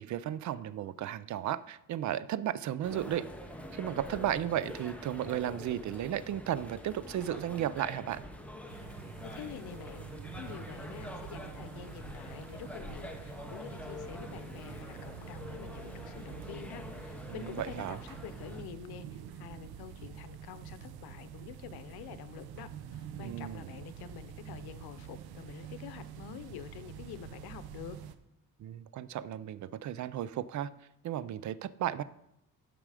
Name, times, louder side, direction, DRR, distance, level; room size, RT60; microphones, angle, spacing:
voice 1, 0.0-3.2 3.7-8.2 17.3-18.0 23.2-23.7 28.6-30.7 31.0-32.0, right 11 dB, 55° right, 17 dB, 0.4 m, -34 dB
sound 1, 2.8-18.6, left 1 dB, 5° left, 0.9 m, -45 dB
sound 2, 8.7-28.2, right 9 dB, 90° right, 0.7 m, -47 dB
voice 2, 9.2-10.1 10.4-28.0, left 9 dB, 90° left, 13 dB, 0.8 m, -47 dB
11.0 x 5.0 x 4.9 m, 0.83 s
cardioid pair, 125°, 37 cm